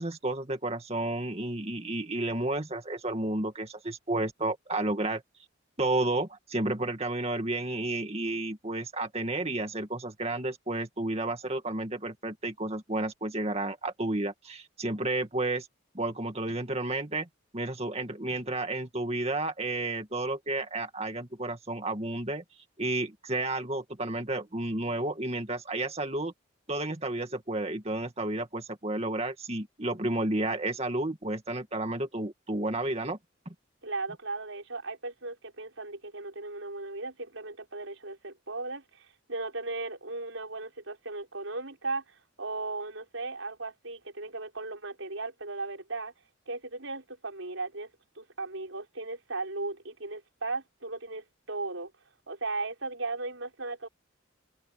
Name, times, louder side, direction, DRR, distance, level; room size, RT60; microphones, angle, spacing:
voice 1, 0.0-5.2 5.8-15.7 15.9-17.3 17.5-22.4 22.8-26.3 26.7-33.2, right 2 dB, 30° right, 2.3 m, -31 dB
voice 2, 33.8-46.1 46.5-47.9 48.2-51.9 52.3-53.9, right 3 dB, 80° right, 5.8 m, -37 dB
head